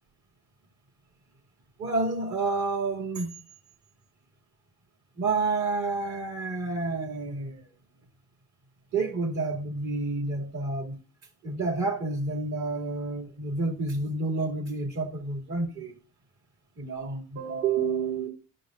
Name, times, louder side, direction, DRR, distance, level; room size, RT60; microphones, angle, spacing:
voice 1, 1.8-3.3 5.2-7.6 8.9-11.0 11.4-16.0 16.8-18.3, right 3 dB, 65° right, 2.4 m, -29 dB
13.0 x 5.4 x 2.5 m
cardioid pair, 90°, 30 cm